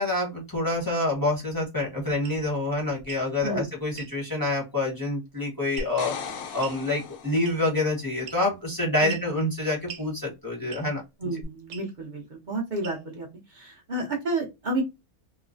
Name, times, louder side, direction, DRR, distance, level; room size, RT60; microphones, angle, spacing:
voice 1, 0.0-6.1 6.5-11.0, left 2 dB, 20° left, -3 dB, 0.7 m, -27 dB
sound 1, 2.2-2.4 3.0-3.3 4.0-4.1 5.8-6.1 6.6-6.8 7.4-7.8 8.3-8.6 9.1-9.3 9.9-10.1 10.7-11.0 11.7-11.9 12.8-13.2, right 8 dB, 85° right, 1.2 m, -42 dB
sound 2, 5.8-7.7 11.4-11.5, left 5 dB, 70° left, 0.9 m, -37 dB
voice 2, 11.2-14.8, right 2 dB, 45° right, -1 dB, 0.6 m, -31 dB
3.0 x 2.0 x 2.5 m, 0.23 s
omnidirectional pair, 1.6 m